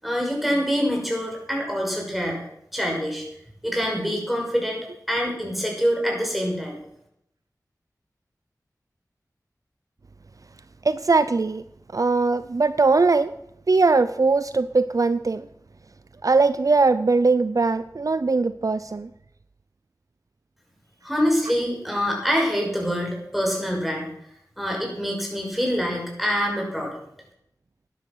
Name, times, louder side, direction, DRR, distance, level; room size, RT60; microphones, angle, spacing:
voice 1, 0.0-2.4 2.7-3.2 3.6-4.8 5.1-6.8 21.0-24.1 24.6-26.9, equal, ahead, 0 dB, 6.1 m, -25 dB
voice 2, 10.8-11.6 11.9-13.3 13.7-15.5 16.2-19.1, right 3 dB, 55° right, 14 dB, 0.5 m, -20 dB
13.0 x 10.5 x 6.2 m, 0.78 s
wide cardioid pair, 45°, 7 cm